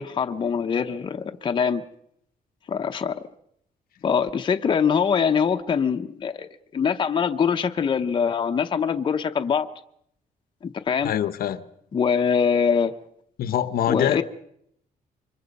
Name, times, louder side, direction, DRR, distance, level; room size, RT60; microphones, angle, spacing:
voice 1, 0.0-1.8 2.7-3.2 4.0-9.7 10.6-11.1 11.9-12.9 13.9-14.2, left 6 dB, 30° left, 0.8 m, -23 dB
voice 2, 11.0-11.6 13.4-14.2, left 10 dB, 65° left, 0.9 m, -24 dB
26.5 x 24.0 x 5.3 m
cardioid pair, 175°, 16 cm